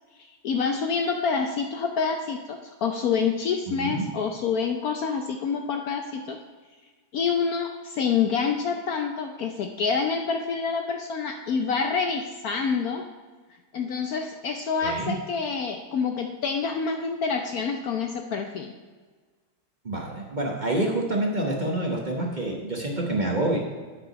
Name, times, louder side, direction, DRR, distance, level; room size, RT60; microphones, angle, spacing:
voice 1, 0.4-6.4 7.1-13.0 13.7-18.7, left 5 dB, 80° left, 5 dB, 0.8 m, -27 dB
voice 2, 3.7-4.1 14.8-15.2 19.8-23.6, right 1 dB, 35° right, -1 dB, 0.7 m, -27 dB
8.8 x 6.0 x 5.1 m, 1.4 s
omnidirectional pair, 2.2 m